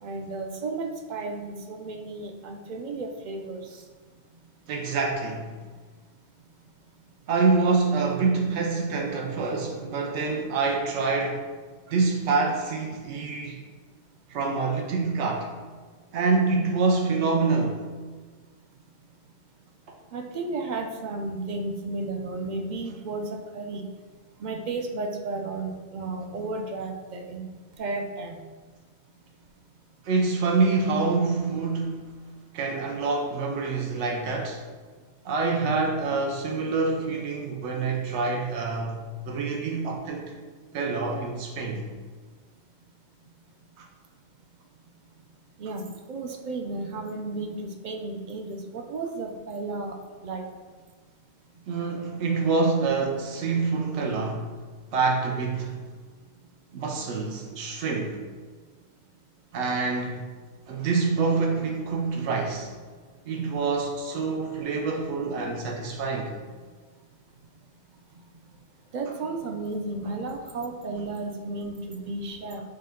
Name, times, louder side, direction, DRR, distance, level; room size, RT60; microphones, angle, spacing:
voice 1, 0.0-3.6 20.1-23.8 24.4-27.5 27.8-28.4 45.6-49.9 50.2-50.4 68.9-72.6, right 3 dB, 55° right, 4 dB, 0.5 m, -33 dB
voice 2, 4.7-5.5 7.3-11.4 11.9-13.6 14.3-15.5 16.1-17.9 30.0-32.2 32.5-34.6 35.2-40.3 40.7-41.9 43.8-43.9 51.7-54.6 54.9-55.8 56.7-58.2 59.5-60.2 60.7-62.7 63.3-66.4, right 4 dB, 85° right, 0 dB, 0.9 m, -26 dB
6.7 x 2.2 x 3.5 m, 1.4 s
omnidirectional pair, 1.1 m